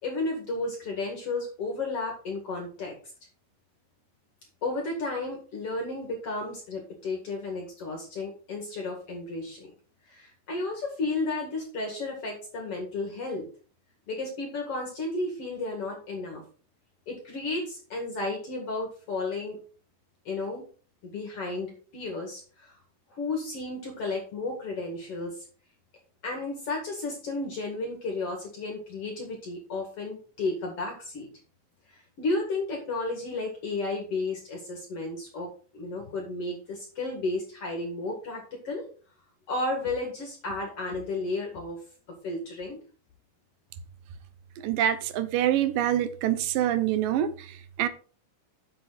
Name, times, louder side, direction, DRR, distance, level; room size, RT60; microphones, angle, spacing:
voice 1, 0.0-3.0 4.6-9.7 10.1-13.5 14.1-16.4 17.1-19.6 20.3-20.6 21.0-22.8 23.1-25.4 26.2-31.3 31.9-38.9 39.5-41.8 42.1-42.8, left 2 dB, 50° left, 2.7 m, -33 dB
voice 2, 44.6-47.9, right 11 dB, 80° right, 2.5 m, -26 dB
8.5 x 7.2 x 4.1 m
omnidirectional pair, 3.9 m